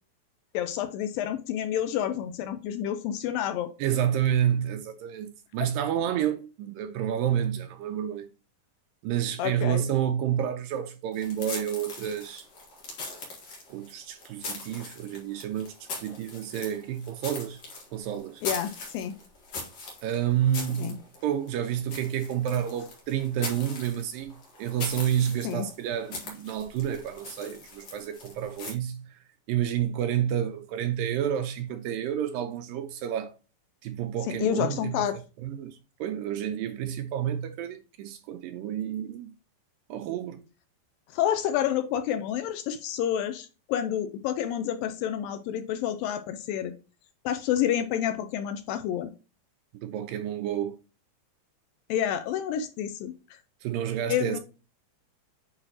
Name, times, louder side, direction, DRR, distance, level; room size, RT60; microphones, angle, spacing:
voice 1, 0.5-3.7 5.6-5.7 9.4-9.9 18.4-19.2 20.8-20.9 25.4-25.7 34.3-35.2 41.1-46.7 47.3-49.1 51.9-53.1 54.1-54.4, left 10 dB, 80° left, 2.2 m, -29 dB
voice 2, 3.8-5.3 5.5-8.3 9.0-12.5 13.7-17.6 17.9-18.4 20.0-29.2 29.5-33.3 33.8-35.1 35.4-39.3 39.9-40.4 49.8-50.8 53.6-54.4, right 10 dB, 80° right, 2.1 m, -29 dB
sound 1, 11.1-28.7, left 3 dB, 50° left, 2.7 m, -41 dB
8.8 x 4.0 x 3.0 m
omnidirectional pair, 4.4 m